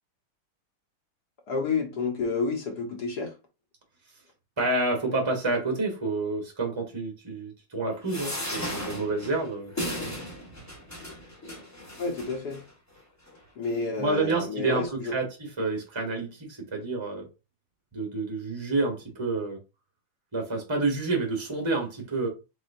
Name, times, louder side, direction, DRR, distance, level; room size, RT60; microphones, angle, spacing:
voice 1, 1.5-3.3 12.0-12.6 13.6-15.1, left 4 dB, 55° left, 1.4 m, -30 dB
voice 2, 4.6-9.7 14.0-17.3 17.9-19.6 20.3-22.3, right 3 dB, 20° right, 0.7 m, -29 dB
sound 1, 8.1-12.6 13.3-13.4 13.6-13.7, left 1 dB, 10° left, 0.9 m, -36 dB
4.7 x 4.1 x 2.6 m
omnidirectional pair, 2.4 m